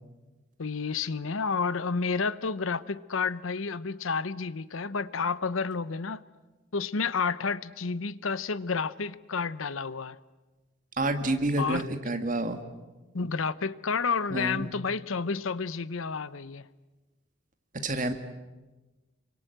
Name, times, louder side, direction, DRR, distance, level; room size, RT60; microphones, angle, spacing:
voice 1, 0.6-6.2 6.7-10.2 11.6-11.8 13.1-16.7, left 5 dB, 80° left, 0.8 m, -30 dB
voice 2, 11.0-12.6 14.3-14.7 17.8-18.1, right 2 dB, 40° right, 1.9 m, -28 dB
27.0 x 24.0 x 8.0 m
head